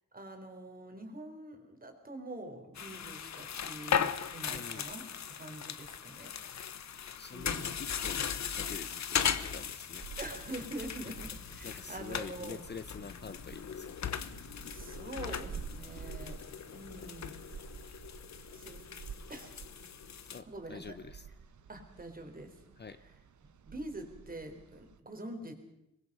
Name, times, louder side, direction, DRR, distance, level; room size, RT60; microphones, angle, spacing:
voice 1, 0.1-5.0 5.4-6.3 7.3-7.7 10.2-12.6 14.6-16.4 16.7-17.7 18.5-18.9 19.3-19.5 20.5-20.8 21.7-22.6 23.7-25.5, right 1 dB, 30° right, 4 dB, 4.0 m, -45 dB
sound 1, 2.7-20.4, left 7 dB, 65° left, 1.1 m, -38 dB
voice 2, 4.5-4.9 7.2-10.1 11.6-14.0 15.7-15.8 20.3-21.3 22.8-23.0, left 5 dB, 35° left, 12 dB, 0.8 m, -46 dB
sound 2, 10.0-25.0, right 6 dB, 75° right, 1.3 m, -50 dB
24.0 x 21.0 x 5.5 m, 0.84 s
wide cardioid pair, 120°, 30 cm